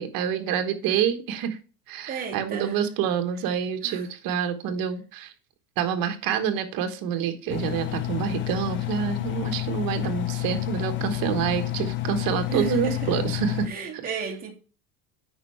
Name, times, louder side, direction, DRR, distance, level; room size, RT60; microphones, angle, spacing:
voice 1, 0.0-1.6 1.9-5.3 5.8-13.7 13.9-14.0, right 8 dB, 50° right, 1.4 m, -27 dB
voice 2, 2.1-2.8 3.8-4.0 12.5-13.0 13.7-14.5, right 6 dB, 20° right, 2.2 m, -33 dB
Engine, 7.5-13.7, left 15 dB, 30° left, 0.4 m, -30 dB
8.9 x 5.5 x 3.4 m
cardioid pair, 140°, 43 cm